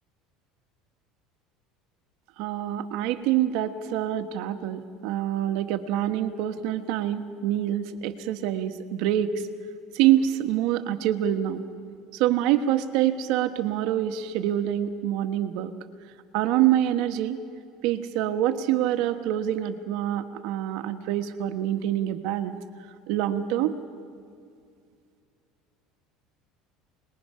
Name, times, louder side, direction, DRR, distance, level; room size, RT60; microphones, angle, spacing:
voice 1, 2.4-9.5 9.9-11.6 12.1-15.7 16.3-17.4 17.8-22.6 23.1-23.7, right 12 dB, 70° right, 8 dB, 1.3 m, -26 dB
27.5 x 20.5 x 5.7 m, 2.3 s
supercardioid pair, 125°, 0 cm